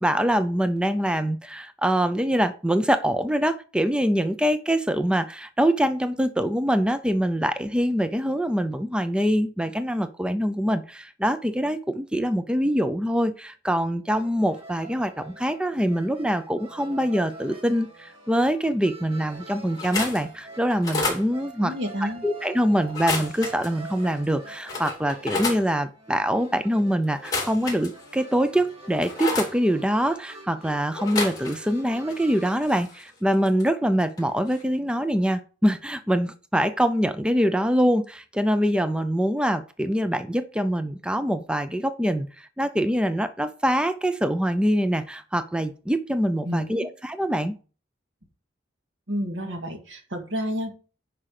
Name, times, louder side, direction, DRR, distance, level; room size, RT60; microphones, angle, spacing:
voice 1, 0.0-21.7 22.0-47.5, equal, 5° right, 10 dB, 0.5 m, -24 dB
sound 1, 14.2-32.6, right 3 dB, 30° right, 1.9 m, -46 dB
sound 2, 19.7-20.2 20.7-21.2 22.8-23.7 24.2-24.3 24.7-25.6 27.1-28.2 28.6-29.5 30.9-31.8 32.0-33.7 34.0-34.2 34.5-34.6, left 3 dB, 20° left, 2.7 m, -30 dB
voice 2, 21.6-22.3 46.5-46.6 49.1-50.7, equal, 90° right, 4 dB, 2.1 m, -30 dB
10.0 x 5.0 x 4.8 m, 0.37 s
head